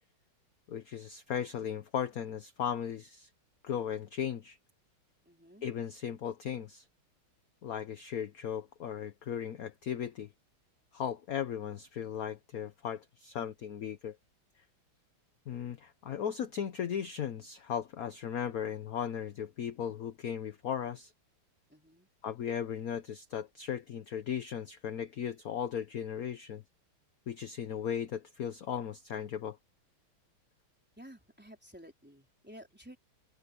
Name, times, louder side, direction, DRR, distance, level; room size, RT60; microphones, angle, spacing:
voice 1, 0.7-3.3 3.6-4.6 5.6-6.9 7.6-10.3 10.9-14.2 15.5-21.1 22.2-26.6 27.3-29.6, left 8 dB, 55° left, 1.1 m, -37 dB
voice 2, 5.3-5.7 21.7-22.1 31.0-33.0, equal, 5° right, 3.8 m, -53 dB
omnidirectional pair, 2.3 m